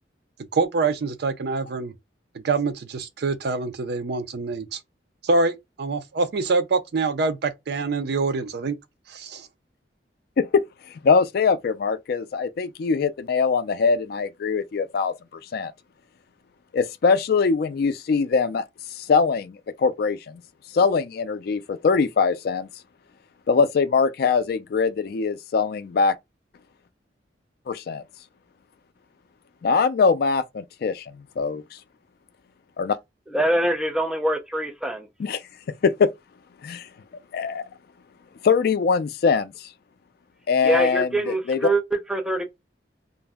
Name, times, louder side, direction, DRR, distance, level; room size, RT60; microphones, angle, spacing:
voice 1, 0.5-1.9 2.3-4.8 5.2-8.8 9.1-9.5, right 3 dB, 60° right, 0.4 m, -25 dB
voice 2, 11.0-15.1 15.5-15.7 16.7-18.7 19.0-20.4 20.7-22.7 23.5-26.1 27.7-28.0 29.6-31.0 31.4-31.6 32.8-33.0 35.2-35.4 35.8-36.1 36.6-36.9 37.3-37.6 38.4-39.5 40.5-41.6, left 5 dB, 55° left, 0.3 m, -22 dB
voice 3, 33.3-35.1 40.6-42.4, right 1 dB, 5° right, 0.5 m, -24 dB
2.5 x 2.1 x 3.4 m
head